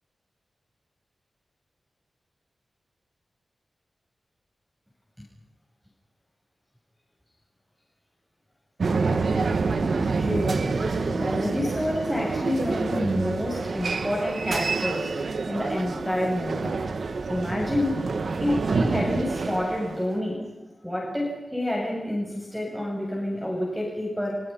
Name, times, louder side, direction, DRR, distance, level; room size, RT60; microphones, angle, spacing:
sound 1, 8.8-20.1, right 4 dB, 75° right, 1.8 m, -27 dB
voice 1, 10.2-10.7 11.1-15.1 15.4-16.7 17.3-18.0 18.4-20.4 20.8-24.4, left 1 dB, ahead, -3 dB, 7.9 m, -28 dB
30.0 x 27.0 x 5.6 m, 1.0 s
cardioid pair, 65°, 0 cm